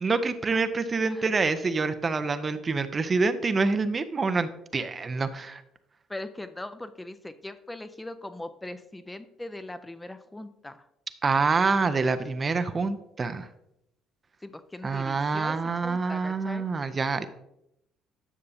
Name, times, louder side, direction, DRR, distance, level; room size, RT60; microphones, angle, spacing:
voice 1, 0.0-5.6 11.2-13.5 14.8-17.3, right 4 dB, 35° right, 10 dB, 0.6 m, -26 dB
voice 2, 6.1-10.9 14.4-16.6, left 1 dB, 15° left, 10 dB, 0.6 m, -40 dB
9.9 x 6.6 x 2.7 m, 0.82 s
hypercardioid pair, 55°, 0 cm